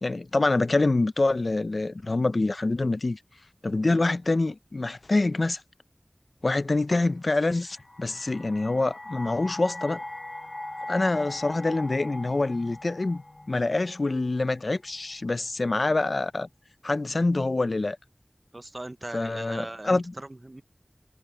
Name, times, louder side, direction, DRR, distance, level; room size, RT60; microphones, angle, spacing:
voice 1, 0.0-3.2 3.6-5.6 6.4-10.0 10.9-13.2 13.5-16.5 16.8-18.0 19.1-20.1, left 2 dB, 75° left, 0.5 m, -26 dB
sound 1, 7.6-14.7, left 2 dB, 45° left, 1.3 m, -40 dB
voice 2, 18.5-20.6, right 1 dB, 40° right, 0.6 m, -39 dB
wide cardioid pair, 45°, 0 cm